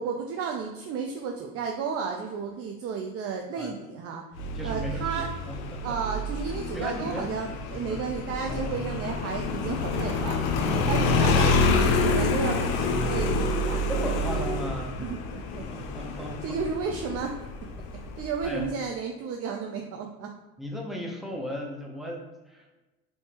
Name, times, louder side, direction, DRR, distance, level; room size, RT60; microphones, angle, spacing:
voice 1, 0.0-4.2 4.6-5.3 5.8-10.4 10.7-13.9 15.0-15.7 16.4-17.4 17.9-20.3, right 5 dB, 50° right, 2 dB, 0.4 m, -33 dB
Motorcycle, 4.4-18.7, left 3 dB, 90° left, 0.5 m, -27 dB
voice 2, 4.5-6.0 6.7-7.3 7.5-7.6 7.9-8.0 10.7-11.1 13.9-15.0 15.7-16.6 18.4-18.6 20.6-22.7, equal, ahead, -1 dB, 0.7 m, -36 dB
3.4 x 2.7 x 2.9 m, 1.1 s
supercardioid pair, 90°, 30 cm